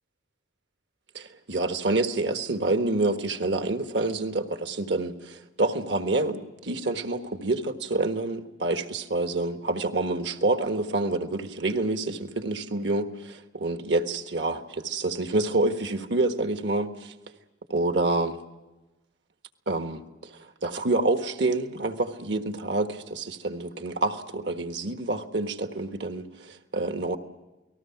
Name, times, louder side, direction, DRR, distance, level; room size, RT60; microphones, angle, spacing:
voice 1, 1.1-17.1 17.7-18.4 19.7-27.2, right 2 dB, 60° right, 7 dB, 1.4 m, -27 dB
29.5 x 19.5 x 5.9 m, 1.1 s
head